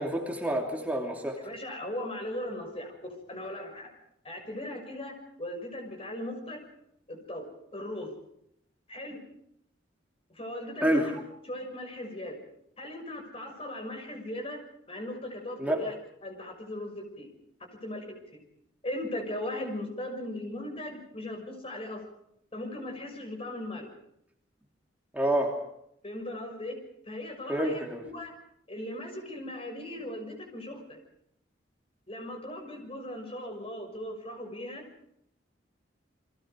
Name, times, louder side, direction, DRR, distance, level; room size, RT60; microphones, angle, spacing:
voice 1, 0.0-1.4 10.8-11.1 15.6-15.8 25.1-25.5 27.5-28.0, right 1 dB, 10° right, 1 dB, 2.9 m, -28 dB
voice 2, 1.4-3.0 3.3-3.9 4.2-6.6 7.1-7.4 7.7-8.1 8.9-9.2 10.3-11.1 11.5-12.4 12.8-14.6 14.9-15.9 16.2-17.3 17.8-18.4 18.8-22.0 22.5-23.9 26.0-26.8 27.0-28.3 28.7-31.0 32.1-34.9, left 1 dB, 35° left, 4 dB, 6.4 m, -38 dB
30.0 x 23.0 x 5.2 m, 0.75 s
head